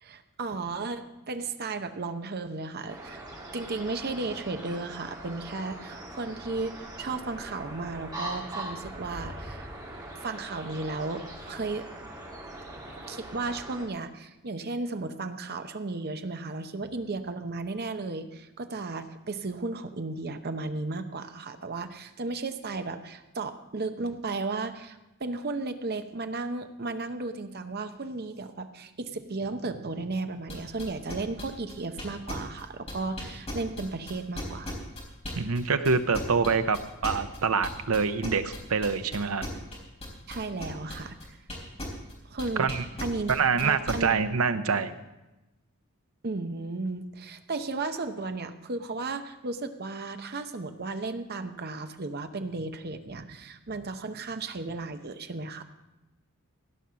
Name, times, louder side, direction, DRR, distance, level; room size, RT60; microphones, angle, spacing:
voice 1, 0.0-3.2 3.5-9.7 10.1-11.8 12.9-34.7 40.3-41.4 42.2-42.7 43.0-43.3 43.6-44.2 46.2-55.6, right 3 dB, 45° right, 8 dB, 0.8 m, -34 dB
sound 1, 2.9-13.9, right 1 dB, 20° right, 2.2 m, -41 dB
sound 2, 30.5-35.6 35.8-42.1 42.4-43.9, left 1 dB, 30° left, 4.0 m, -37 dB
voice 2, 35.4-39.5 42.6-42.8 43.3-44.9, right 5 dB, 75° right, 10 dB, 0.7 m, -26 dB
16.5 x 5.5 x 7.5 m, 1.0 s
head